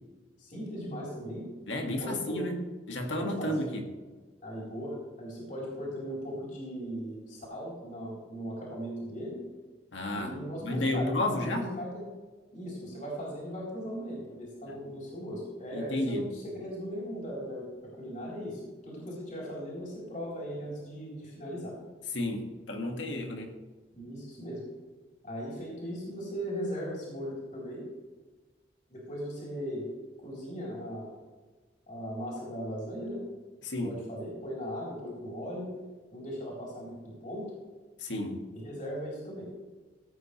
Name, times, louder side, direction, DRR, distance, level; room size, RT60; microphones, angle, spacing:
voice 1, 0.4-1.5 1.8-2.5 3.1-3.5 4.4-9.4 10.1-12.0 12.5-21.8 23.9-24.6 25.2-27.9 28.9-29.9 30.2-31.1 31.9-33.2 33.8-35.7 36.1-37.5 38.5-39.5, equal, 45° left, -4 dB, 4.0 m, -38 dB
voice 2, 1.7-3.8 9.9-10.4 10.6-11.8 14.7-14.8 15.7-16.2 22.1-23.5 33.6-34.0 38.0-38.5, left 1 dB, 80° left, 2 dB, 2.0 m, -32 dB
16.0 x 8.7 x 3.3 m, 1.3 s
head